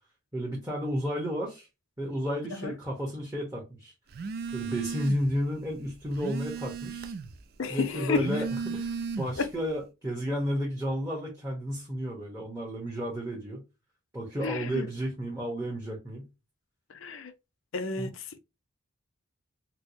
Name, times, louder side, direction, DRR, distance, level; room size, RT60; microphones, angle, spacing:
voice 1, 0.3-1.7 2.0-3.9 4.5-7.1 7.7-13.6 14.1-16.3 18.0-18.1, equal, 15° right, 0.9 m, -32 dB
Telephone, 4.1-5.4 5.7-7.4 8.0-9.5, right 5 dB, 45° right, 0.3 m, -35 dB
voice 2, 7.6-8.4 9.4-9.5 14.4-14.9 16.9-17.3 17.7-18.4, left 4 dB, 70° left, 0.5 m, -32 dB
4.4 x 2.1 x 2.6 m
head